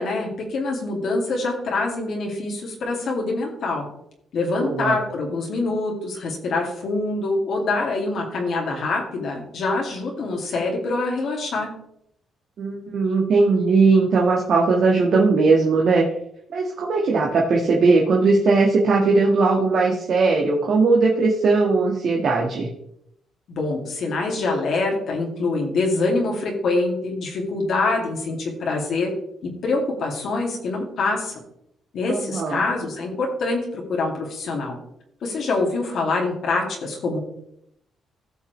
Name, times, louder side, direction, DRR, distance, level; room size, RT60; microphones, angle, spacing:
voice 1, 0.0-3.9 4.3-11.7 23.5-29.1 29.6-31.4 31.9-34.7 35.2-37.2, left 3 dB, 65° left, 0 dB, 2.3 m, -25 dB
voice 2, 4.6-5.0 12.6-16.1 16.5-22.7 32.1-32.6, right 3 dB, 60° right, -1 dB, 1.5 m, -19 dB
15.0 x 5.9 x 3.2 m, 0.76 s
cardioid pair, 90°, 0 cm